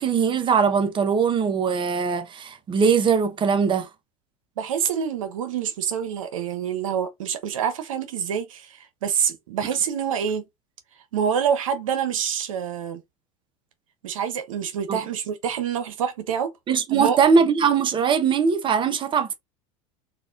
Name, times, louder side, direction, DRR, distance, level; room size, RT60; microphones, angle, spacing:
voice 1, 0.0-3.9 14.9-15.0 16.7-19.3, right 6 dB, 30° right, 0.9 m, -21 dB
voice 2, 4.6-10.4 11.1-13.0 14.0-16.5 16.9-17.2, right 8 dB, 90° right, 0.7 m, -26 dB
4.0 x 2.4 x 2.4 m
hypercardioid pair, 95°, 17 cm